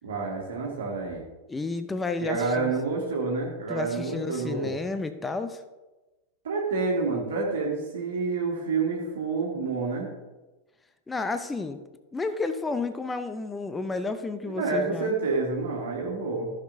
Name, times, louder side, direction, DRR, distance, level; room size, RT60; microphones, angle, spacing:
voice 1, 0.0-1.2 2.2-4.7 6.4-10.1 14.6-16.5, right 4 dB, 60° right, -2 dB, 1.7 m, -28 dB
voice 2, 1.5-2.7 3.7-5.6 11.1-11.8 12.1-15.1, left 3 dB, 10° left, 10 dB, 0.6 m, -31 dB
14.5 x 6.6 x 2.7 m, 1.1 s
figure-of-eight pair, 90°, 0 cm